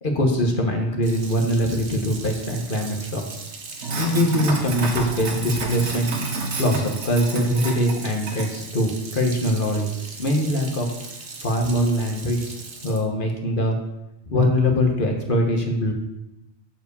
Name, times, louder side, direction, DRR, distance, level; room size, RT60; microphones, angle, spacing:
voice 1, 0.0-3.2 3.9-6.1 6.6-9.9 10.2-10.9 11.4-12.6 12.8-13.8 14.3-15.9, equal, 50° left, 1 dB, 1.4 m, -22 dB
Sink (filling or washing), 1.0-13.0, right 3 dB, 85° right, 1.4 m, -33 dB
7.6 x 4.7 x 6.8 m, 0.91 s
omnidirectional pair, 1.1 m